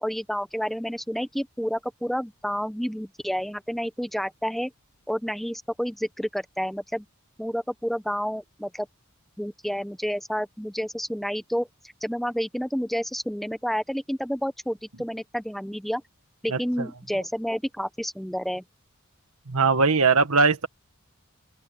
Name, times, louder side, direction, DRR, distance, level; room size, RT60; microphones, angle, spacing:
voice 1, 0.0-4.7 5.1-7.1 7.4-8.9 9.4-11.7 12.0-16.0 16.4-18.6, equal, ahead, 0.9 m, -29 dB
voice 2, 19.5-20.7, right 4 dB, 85° right, 1.7 m, -20 dB
open air
head